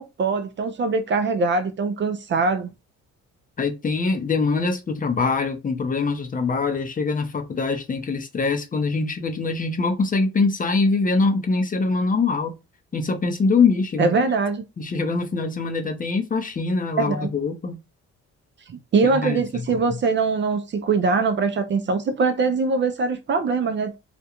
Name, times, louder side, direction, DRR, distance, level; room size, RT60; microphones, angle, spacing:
voice 1, 0.0-2.7 14.0-14.6 17.0-17.3 18.7-24.0, right 4 dB, 40° right, 0.4 m, -22 dB
voice 2, 3.6-12.5 12.9-14.1 14.8-17.8 19.1-19.4, left 4 dB, 30° left, 0.5 m, -23 dB
2.4 x 2.1 x 2.9 m
cardioid pair, 90°, 30 cm